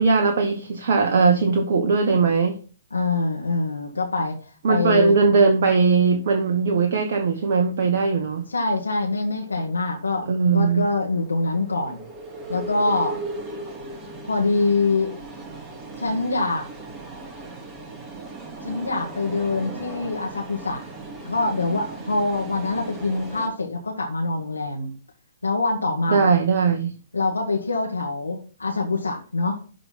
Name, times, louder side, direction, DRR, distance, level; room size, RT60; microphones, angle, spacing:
voice 1, 0.0-2.6 4.6-8.4 10.3-10.8 26.1-26.9, right 4 dB, 55° right, 1.1 m, -19 dB
voice 2, 2.9-5.2 8.5-10.3 10.5-12.0 12.5-13.2 14.2-15.1 16.0-16.7 18.6-20.8 21.2-24.9 25.4-26.3 27.1-29.6, left 3 dB, 85° left, 1.6 m, -24 dB
sound 1, 9.4-23.5, right 2 dB, 20° right, 2.0 m, -37 dB
11.5 x 3.9 x 4.0 m
figure-of-eight pair, 120°, 0 cm